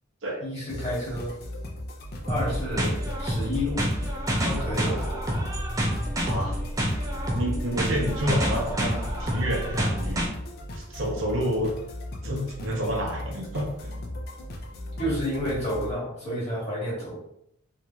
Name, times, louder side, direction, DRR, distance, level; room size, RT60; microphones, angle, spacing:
voice 1, 0.4-1.3 2.2-3.9 4.3-5.2 15.0-17.2, equal, 30° left, -6 dB, 1.2 m, -30 dB
sound 1, 0.7-15.9, left 1 dB, 45° left, 0.4 m, -37 dB
sound 2, 2.3-10.3, equal, 15° right, 0.4 m, -28 dB
voice 2, 6.2-6.6 7.3-10.3 10.7-11.7 12.2-14.0, equal, 65° right, -1 dB, 0.7 m, -29 dB
3.0 x 2.6 x 2.2 m, 0.74 s
head